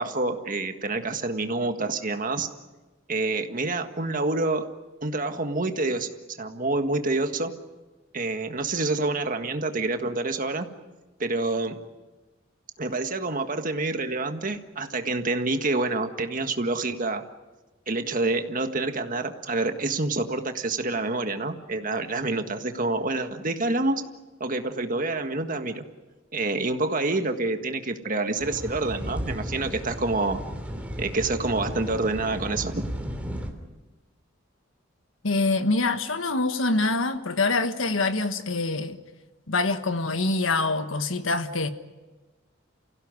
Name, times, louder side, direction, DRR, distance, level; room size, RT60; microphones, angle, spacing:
voice 1, 0.0-2.5 3.1-4.7 5.0-6.1 6.4-7.5 8.1-10.7 11.2-11.8 12.8-17.2 17.9-24.0 24.4-25.9 26.3-30.4 31.0-32.8, right 2 dB, 45° right, 1.7 m, -27 dB
sound 1, 28.4-33.5, equal, 5° right, 2.9 m, -34 dB
voice 2, 35.2-39.0 39.5-41.7, left 3 dB, 90° left, 1.5 m, -25 dB
29.5 x 16.5 x 9.7 m
head